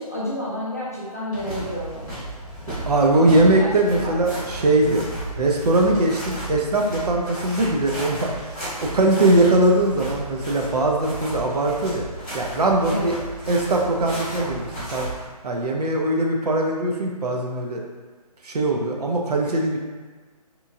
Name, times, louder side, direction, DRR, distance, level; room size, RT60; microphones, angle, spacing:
voice 1, 0.0-2.2 3.1-4.5 12.9-13.1, equal, 25° left, -8 dB, 0.4 m, -30 dB
sound 1, 1.3-15.2, right 1 dB, ahead, 0.9 m, -34 dB
voice 2, 2.9-5.1 5.4-8.5 8.8-13.1 13.5-15.1 15.4-17.8 18.4-19.8, right 2 dB, 75° right, 0 dB, 0.6 m, -21 dB
2.9 x 2.3 x 2.6 m, 1.4 s
hypercardioid pair, 180°, 20 cm